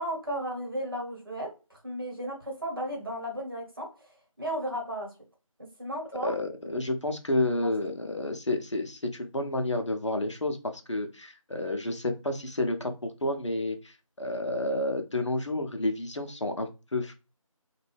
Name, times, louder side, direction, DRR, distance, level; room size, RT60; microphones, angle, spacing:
voice 1, 0.0-5.1 5.8-6.3 7.6-7.7 8.0-8.2, equal, 40° right, -1 dB, 1.1 m, -35 dB
voice 2, 6.1-17.1, left 2 dB, 55° left, 5 dB, 0.5 m, -30 dB
2.6 x 2.2 x 3.3 m, 0.30 s
figure-of-eight pair, 175°, 18 cm